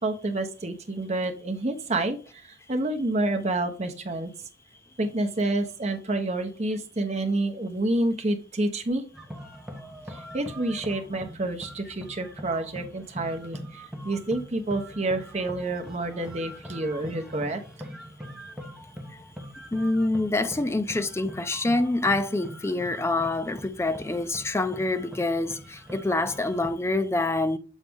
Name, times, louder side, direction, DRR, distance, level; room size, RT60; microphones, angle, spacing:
voice 1, 0.0-4.3 5.0-9.0 10.1-17.6, right 2 dB, 40° right, 0.9 m, -28 dB
sound 1, 9.1-26.7, equal, 5° right, 1.0 m, -43 dB
voice 2, 19.7-27.6, left 2 dB, 15° left, 0.4 m, -26 dB
7.3 x 4.1 x 3.5 m
head